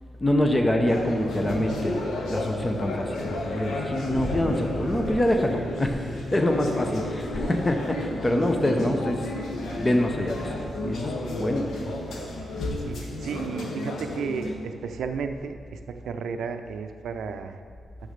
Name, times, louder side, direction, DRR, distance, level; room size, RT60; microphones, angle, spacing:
voice 1, 0.2-1.9 2.3-9.3 9.8-11.7, left 1 dB, 15° left, 4 dB, 0.6 m, -25 dB
sound 1, 0.9-14.5, left 1 dB, 70° left, 1.0 m, -32 dB
voice 2, 12.8-17.6, right 6 dB, 85° right, 8 dB, 0.5 m, -33 dB
6.5 x 6.4 x 6.5 m, 2.1 s
wide cardioid pair, 175°, 0 cm